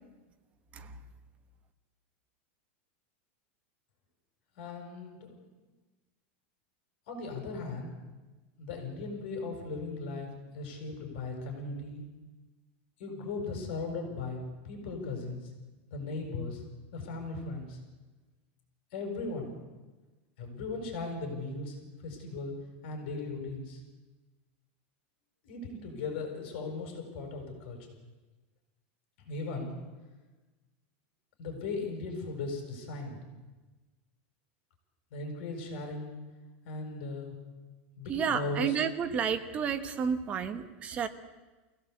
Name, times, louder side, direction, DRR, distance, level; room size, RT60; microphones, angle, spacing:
voice 1, 4.6-5.4 7.1-7.9 8.6-12.0 13.0-15.5 15.9-16.7 16.9-17.8 18.9-19.5 20.4-22.6 22.8-23.8 25.4-27.8 29.3-29.8 31.4-33.2 35.1-36.1 36.6-37.4 38.0-38.8, left 3 dB, 55° left, 3 dB, 7.2 m, -37 dB
voice 2, 38.1-41.1, right 7 dB, 20° right, 8 dB, 1.2 m, -31 dB
23.0 x 17.0 x 8.5 m, 1.2 s
supercardioid pair, 175°, 7 cm